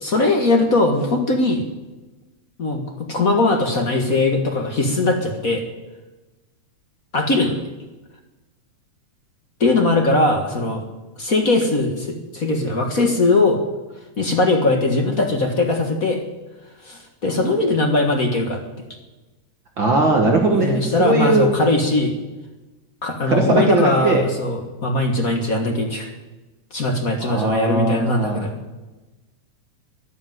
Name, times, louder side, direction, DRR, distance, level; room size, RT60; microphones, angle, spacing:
voice 1, 0.0-1.6 2.6-5.6 7.1-7.6 9.6-10.8 11.2-13.6 14.2-16.2 16.8-18.6 20.5-22.1 23.0-26.1 26.7-28.5, left 2 dB, 40° left, 3 dB, 1.3 m, -20 dB
voice 2, 19.8-21.5 23.3-24.2 27.2-28.4, right 2 dB, 45° right, 2 dB, 1.8 m, -19 dB
11.5 x 11.0 x 9.1 m, 1.1 s
omnidirectional pair, 3.5 m